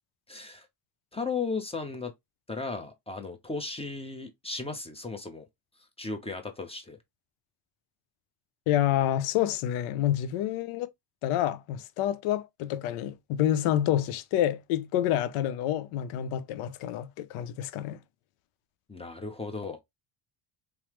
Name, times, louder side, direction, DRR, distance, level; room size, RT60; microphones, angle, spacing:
voice 1, 0.3-0.7 1.1-2.1 2.5-5.5 6.0-7.0 18.9-19.8, left 4 dB, 10° left, 0.6 m, -35 dB
voice 2, 8.7-10.9 11.2-18.0, left 11 dB, 80° left, 0.6 m, -28 dB
3.1 x 2.0 x 2.9 m
cardioid pair, 90°, 50 cm